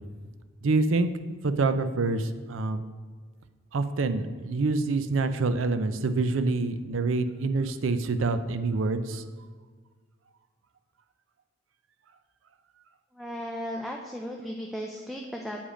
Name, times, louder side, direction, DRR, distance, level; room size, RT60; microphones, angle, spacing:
voice 1, 0.6-1.1 1.4-2.8 3.7-9.2, right 3 dB, 85° right, 11 dB, 0.5 m, -26 dB
voice 2, 13.1-15.6, equal, ahead, 0 dB, 0.4 m, -36 dB
7.1 x 5.0 x 5.0 m, 1.5 s
head